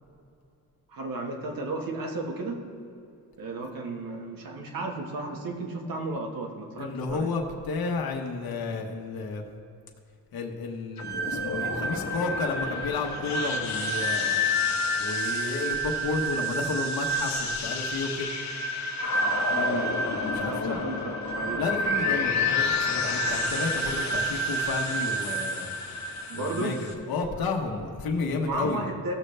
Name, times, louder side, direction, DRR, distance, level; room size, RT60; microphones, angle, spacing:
voice 1, 0.9-2.6 3.4-7.3 19.5-19.9 20.5-22.3 26.3-26.8 28.4-29.1, right 2 dB, 65° right, 2 dB, 1.5 m, -34 dB
voice 2, 6.8-9.4 10.3-14.4 15.0-18.3 20.3-20.8 21.6-25.7 26.3-28.9, left 4 dB, 75° left, 1 dB, 1.1 m, -32 dB
sound 1, 11.0-26.9, left 1 dB, 50° left, 1.1 m, -29 dB
16.0 x 6.6 x 3.3 m, 2.5 s
wide cardioid pair, 150°, 36 cm